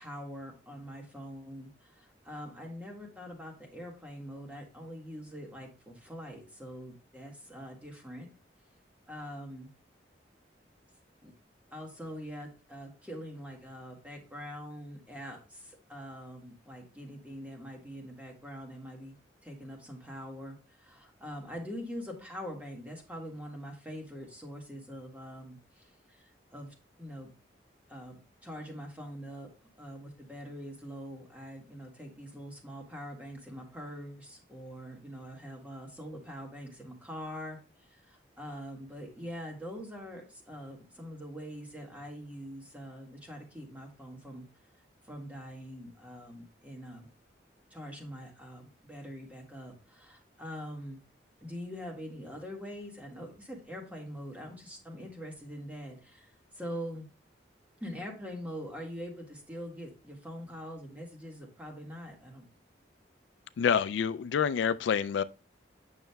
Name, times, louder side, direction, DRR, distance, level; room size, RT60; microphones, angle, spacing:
voice 1, 0.0-8.3 9.1-9.7 11.2-11.3 11.7-19.1 19.4-27.3 27.9-28.1 28.4-29.5 29.8-44.4 45.1-47.1 47.7-51.0 51.4-57.1 57.8-62.4, equal, 10° right, 1.7 m, -44 dB
voice 2, 63.6-65.2, left 7 dB, 85° left, 0.3 m, -27 dB
9.0 x 6.3 x 2.2 m
head